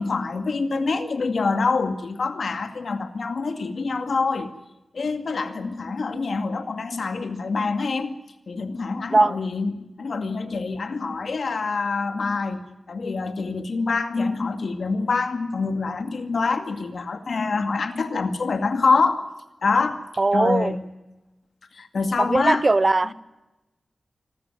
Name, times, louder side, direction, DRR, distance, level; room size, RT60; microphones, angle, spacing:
voice 1, 0.0-4.5 4.9-8.1 8.5-12.6 12.9-19.2 19.6-20.0 20.3-20.8 21.7-22.6, left 4 dB, 70° left, 7 dB, 2.2 m, -25 dB
voice 2, 20.2-20.7 22.2-23.1, right 2 dB, 35° right, 17 dB, 0.7 m, -19 dB
26.0 x 13.5 x 9.3 m, 1.0 s
wide cardioid pair, 100°, 0 cm